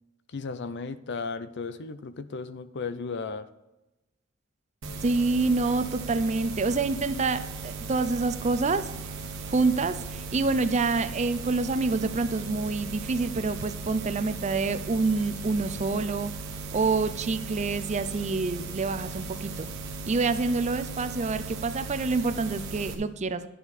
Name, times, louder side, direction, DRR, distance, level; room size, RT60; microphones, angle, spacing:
voice 1, 0.3-3.5, left 4 dB, 55° left, 13 dB, 0.5 m, -35 dB
sound 1, 4.8-22.9, right 4 dB, 65° right, 1.3 m, -37 dB
voice 2, 5.0-8.8 9.5-16.3 16.7-19.7 20.1-23.5, right 3 dB, 35° right, 12 dB, 0.5 m, -27 dB
11.0 x 7.1 x 4.2 m, 1.0 s
head